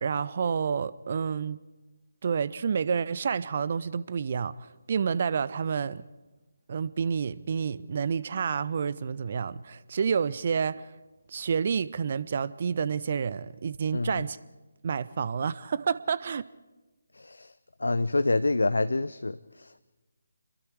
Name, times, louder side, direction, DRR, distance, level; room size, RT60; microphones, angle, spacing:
voice 1, 0.0-1.6 2.2-4.5 4.9-6.0 6.7-10.8 11.3-14.4 14.8-16.4, right 6 dB, 40° right, 0.6 m, -29 dB
voice 2, 13.9-14.2 17.1-17.5 17.8-19.8, left 2 dB, 65° left, 0.6 m, -27 dB
28.0 x 22.5 x 4.7 m
figure-of-eight pair, 150°, 0 cm